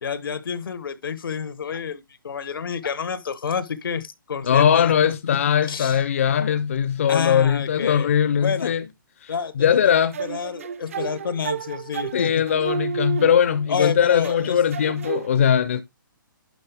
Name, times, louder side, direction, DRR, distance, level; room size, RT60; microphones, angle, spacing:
voice 1, 0.0-4.9 5.2-6.0 7.1-8.1 8.4-8.7 9.3-9.5 9.8-12.4 13.7-14.6, left 6 dB, 80° left, 1.0 m, -29 dB
voice 2, 4.4-8.9 9.2-10.2 12.1-15.8, left 8 dB, 40° left, 0.4 m, -20 dB
sound 1, 10.1-13.8 14.2-15.3, right 7 dB, 40° right, 0.4 m, -32 dB
11.0 x 4.2 x 3.4 m
hypercardioid pair, 170°, 11 cm